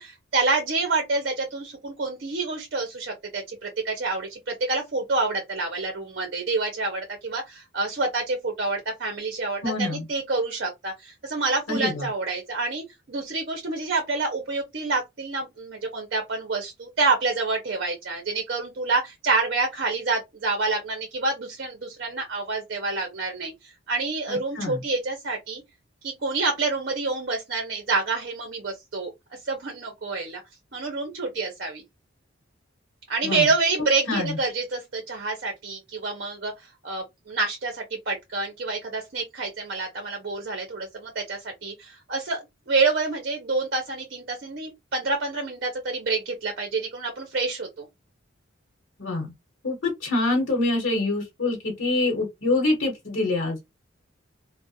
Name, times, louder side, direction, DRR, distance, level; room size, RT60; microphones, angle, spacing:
voice 1, 0.0-25.6 26.0-29.1 29.4-30.4 30.7-31.8 33.1-47.9, right 3 dB, 55° right, 0.6 m, -28 dB
voice 2, 9.6-10.0 11.7-12.1 24.3-24.8 33.2-33.4 34.1-34.4 49.0-49.3 49.6-53.7, left 2 dB, 85° left, 0.9 m, -25 dB
2.4 x 2.0 x 2.7 m
head